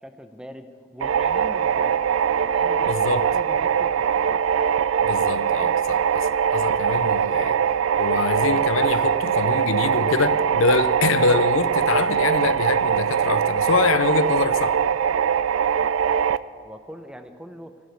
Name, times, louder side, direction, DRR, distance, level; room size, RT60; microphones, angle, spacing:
voice 1, 0.0-0.7 0.9-2.0 2.2-4.5 16.6-17.7, equal, 5° right, 0.6 m, -40 dB
sound 1, 1.0-16.4, right 7 dB, 85° right, 0.4 m, -22 dB
voice 2, 2.9-3.2 5.0-7.6 8.0-14.8, left 4 dB, 85° left, 0.5 m, -24 dB
14.5 x 7.1 x 9.3 m
head